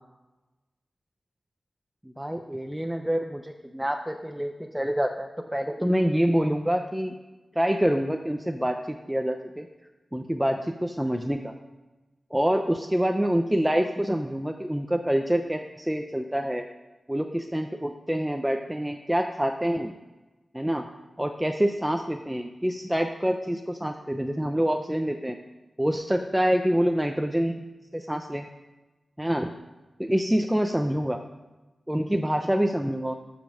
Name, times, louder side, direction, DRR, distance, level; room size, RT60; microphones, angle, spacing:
voice 1, 2.0-7.1 7.6-9.7 10.1-11.5 12.3-16.7 17.1-19.9 20.5-20.9 21.2-25.3 25.8-27.6 27.9-28.5 29.2-29.5 30.0-31.2 31.9-33.1, equal, 5° right, 4 dB, 0.7 m, -26 dB
13.5 x 5.2 x 6.4 m, 1.1 s
cardioid pair, 65°, 0 cm